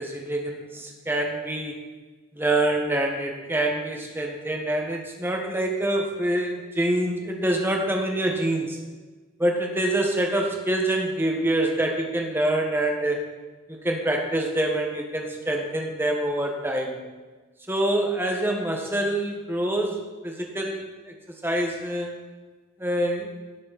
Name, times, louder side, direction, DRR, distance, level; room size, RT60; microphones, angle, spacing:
voice 1, 0.0-1.8 2.3-8.8 9.4-13.2 13.7-17.0 17.7-21.1 21.4-22.1 22.8-23.3, right 1 dB, 10° right, 1 dB, 1.5 m, -26 dB
18.0 x 7.2 x 4.2 m, 1.3 s
head